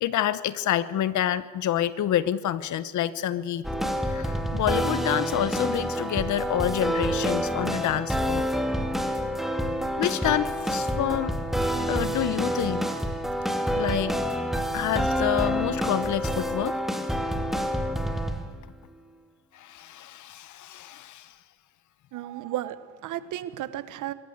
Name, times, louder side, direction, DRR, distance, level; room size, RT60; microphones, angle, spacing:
voice 1, 0.0-3.6 4.1-8.5 10.0-11.4 11.9-12.9 13.8-14.1 14.7-16.8 17.7-17.9 19.5-21.3, left 11 dB, 75° left, 16 dB, 1.1 m, -28 dB
sound 1, 3.6-18.6, equal, ahead, 2.2 m, -28 dB
voice 2, 22.1-24.1, right 13 dB, 85° right, 15 dB, 1.1 m, -34 dB
24.0 x 14.0 x 8.0 m, 1.4 s
cardioid pair, 90°, 30 cm